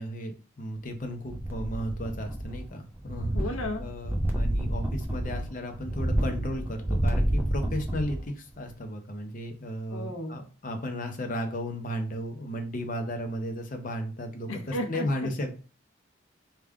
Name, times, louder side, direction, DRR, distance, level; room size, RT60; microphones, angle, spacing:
voice 1, 0.0-3.3 3.8-15.5, equal, 40° left, 5 dB, 0.6 m, -34 dB
sound 1, 1.3-2.7 3.0-8.3 8.7-8.8, right 1 dB, 10° right, 0.4 m, -29 dB
voice 2, 3.3-3.8 9.9-10.4 14.5-15.1, left 1 dB, 90° left, 2 dB, 0.8 m, -33 dB
3.5 x 2.4 x 3.4 m, 0.36 s
head